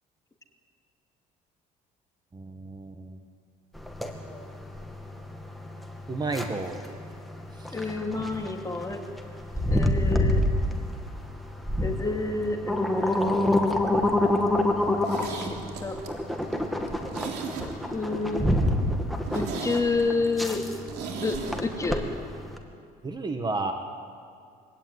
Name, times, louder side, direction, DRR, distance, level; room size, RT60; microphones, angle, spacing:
voice 1, 2.3-3.2 6.1-6.8 7.6-7.8 23.0-23.7, right 3 dB, 25° right, 5 dB, 1.7 m, -32 dB
sound 1, 3.8-22.6, left 1 dB, ahead, 2.4 m, -27 dB
voice 2, 7.7-9.0 9.7-10.4 11.8-13.4 15.2-16.0 17.9-18.6 19.3-20.6 21.2-22.0, left 3 dB, 20° left, 2 dB, 2.7 m, -29 dB
Zipper (clothing), 14.8-18.1 18.4-18.5 18.8-18.9 19.2-21.6 21.9-22.0, right 6 dB, 80° right, 3.3 m, -37 dB
24.0 x 17.5 x 9.7 m, 2.3 s
cardioid pair, 110°, 17 cm